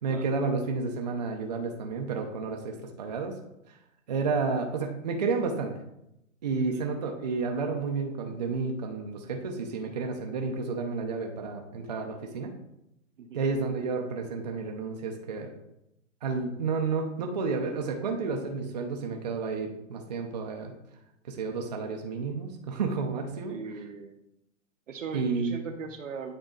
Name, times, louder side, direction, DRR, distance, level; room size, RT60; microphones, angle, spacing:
voice 1, 0.0-3.3 4.1-5.7 6.4-12.5 13.3-15.5 16.2-20.7 21.3-23.6 25.1-25.5, right 4 dB, 30° right, 3 dB, 0.6 m, -31 dB
voice 2, 6.6-6.9 13.2-13.5 23.5-24.2 24.9-26.3, right 5 dB, 70° right, 6 dB, 1.1 m, -39 dB
8.9 x 3.9 x 3.8 m, 0.82 s
hypercardioid pair, 170°, 39 cm